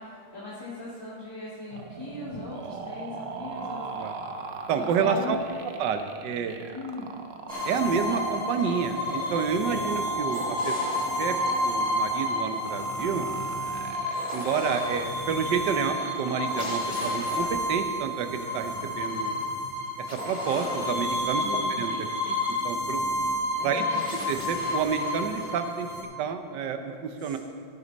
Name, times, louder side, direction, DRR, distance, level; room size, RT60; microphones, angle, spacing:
voice 1, 0.3-3.8 4.7-5.4 6.7-7.1 21.4-22.0 23.5-24.0 27.2-27.4, left 2 dB, 10° left, -10 dB, 2.2 m, -38 dB
sound 1, 1.7-17.7, right 4 dB, 90° right, 0.5 m, -40 dB
voice 2, 4.7-5.4 5.8-6.6 7.6-10.7 11.2-11.3 11.6-13.3 14.3-19.4 20.2-23.0 23.6-25.9 26.2-27.4, right 6 dB, 65° right, 7 dB, 1.4 m, -29 dB
sound 2, 7.5-26.0, left 1 dB, 15° right, 3.7 m, -30 dB
16.5 x 9.8 x 4.1 m, 2.4 s
omnidirectional pair, 2.2 m